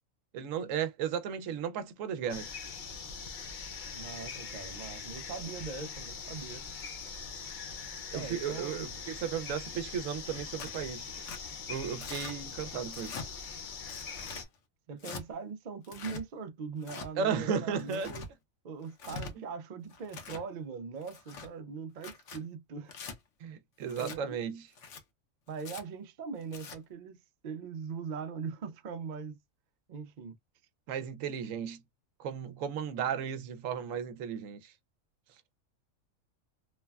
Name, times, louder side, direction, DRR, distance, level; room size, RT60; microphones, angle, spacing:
voice 1, 0.3-2.5 8.1-11.1 11.7-13.2 17.2-18.2 23.4-24.7 30.9-31.8 32.2-34.7, right 7 dB, 75° right, 0.9 m, -35 dB
sound 1, 2.3-14.4, left 5 dB, 50° left, 0.6 m, -42 dB
voice 2, 3.9-6.6 8.1-8.9 14.9-18.2 18.6-23.0 24.0-24.4 25.5-29.4 29.9-30.3, right 5 dB, 55° right, 0.5 m, -41 dB
Tearing, 10.6-10.8 11.3-11.4 12.0-12.4 12.9-13.3 13.9-14.5 15.0-15.2 15.8-16.2 16.8-17.1 17.8-18.3 18.9-19.3 19.9-20.5 21.0-21.5 22.0-22.4 22.9-23.2 23.9-24.2 24.7-25.0 25.6-25.8 26.4-26.8, left 4 dB, 65° left, 1.1 m, -43 dB
3.2 x 2.1 x 2.2 m
omnidirectional pair, 1.4 m